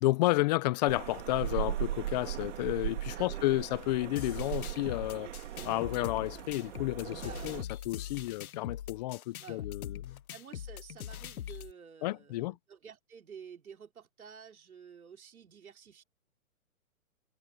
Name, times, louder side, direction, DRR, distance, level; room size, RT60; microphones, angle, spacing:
voice 1, 0.0-5.3 5.6-10.2 12.0-12.6, left 19 dB, 30° left, 0.9 m, -31 dB
sound 1, 0.9-7.6, right 12 dB, 55° right, 2.5 m, -38 dB
voice 2, 3.2-3.7 7.2-7.5 9.4-9.7 10.3-16.0, right 7 dB, 80° right, 3.4 m, -51 dB
sound 2, 4.2-11.7, left 10 dB, 75° left, 0.8 m, -42 dB
hypercardioid pair, 145°, 42 cm